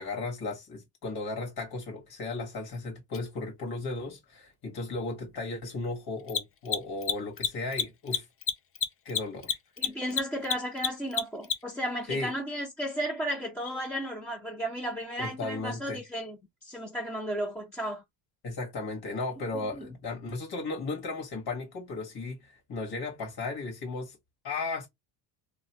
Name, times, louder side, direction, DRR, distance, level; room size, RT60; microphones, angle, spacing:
voice 1, 0.0-8.2 9.0-9.6 12.1-12.3 15.2-16.0 18.4-24.2 24.4-24.9, left 3 dB, 50° left, 1.6 m, -35 dB
Mechanisms, 3.1-3.2 6.2-11.8, left 7 dB, 30° left, 0.5 m, -29 dB
voice 2, 9.8-16.4 16.6-18.0 19.8-19.9, equal, 5° left, 1.2 m, -34 dB
3.1 x 2.5 x 2.9 m
supercardioid pair, 80°, 47 cm